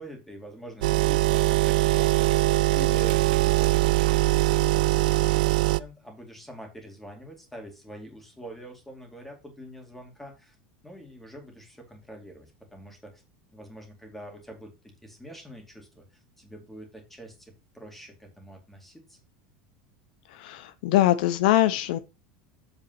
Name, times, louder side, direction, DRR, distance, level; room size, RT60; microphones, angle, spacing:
voice 1, 0.0-10.6 10.8-13.2 13.5-19.2, right 1 dB, 5° left, 2.3 m, -45 dB
sound 1, 0.8-5.8, right 18 dB, 85° right, 0.4 m, -22 dB
voice 2, 20.3-22.0, left 14 dB, 75° left, 0.6 m, -22 dB
8.0 x 4.1 x 5.6 m
supercardioid pair, 150°, 5 cm